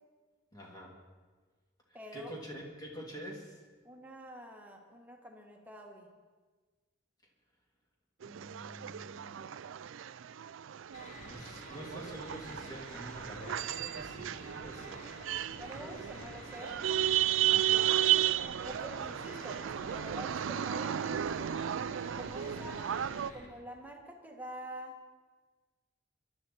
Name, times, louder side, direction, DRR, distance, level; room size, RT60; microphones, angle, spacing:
voice 1, 0.5-0.9 2.1-3.6 8.2-9.5 11.2-15.1 15.7-16.3 17.5-18.0, equal, 20° left, -1 dB, 2.7 m, -47 dB
voice 2, 1.9-2.3 3.8-6.1 15.6-16.8 18.6-21.5 22.2-22.9 23.3-24.9, right 1 dB, 10° right, 1 dB, 1.6 m, -46 dB
sound 1, 8.2-23.3, right 11 dB, 70° right, 0.4 m, -34 dB
sound 2, 10.9-23.5, left 1 dB, 35° left, 2.8 m, -50 dB
23.0 x 12.0 x 4.3 m, 1.4 s
head